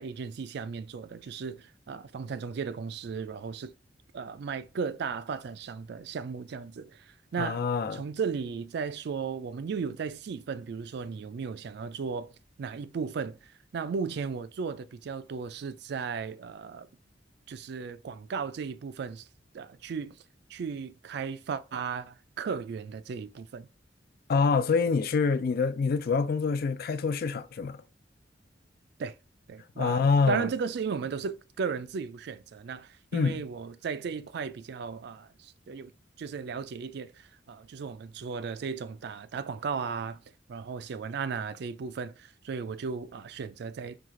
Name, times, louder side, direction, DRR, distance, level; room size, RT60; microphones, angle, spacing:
voice 1, 0.0-3.7 4.1-7.6 7.9-12.3 12.6-13.4 13.7-16.9 17.5-19.3 19.5-20.2 20.5-23.7 29.0-29.1 29.5-35.9 36.2-40.2 40.5-44.0, right 5 dB, 60° right, 0.4 m, -35 dB
voice 2, 7.4-8.0 24.3-27.8 29.8-30.5 33.1-33.4, left 5 dB, 55° left, 0.4 m, -26 dB
4.6 x 2.4 x 3.7 m
head